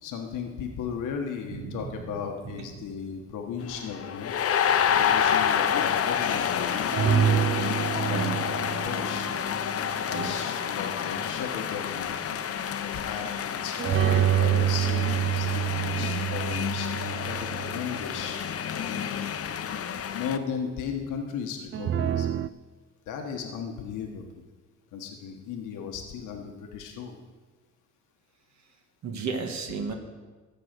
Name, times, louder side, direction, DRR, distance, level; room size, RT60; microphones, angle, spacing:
voice 1, 0.0-4.3 4.9-7.4 8.1-9.3 10.1-12.2 12.8-18.4 18.8-19.1 20.1-22.4 23.1-24.2 24.9-27.2, left 7 dB, 90° left, 3 dB, 1.3 m, -36 dB
voice 2, 1.5-1.8 2.4-2.7 4.8-5.0 8.1-8.4 10.1-10.4 29.0-29.9, right 5 dB, 65° right, 4 dB, 1.5 m, -34 dB
sound 1, 3.7-20.4, left 8 dB, 50° left, 0.7 m, -29 dB
sound 2, 6.9-10.4 13.8-18.3 21.7-22.5, right 10 dB, 45° right, 0.4 m, -27 dB
14.0 x 4.8 x 7.9 m, 1.3 s
cardioid pair, 90°, 30 cm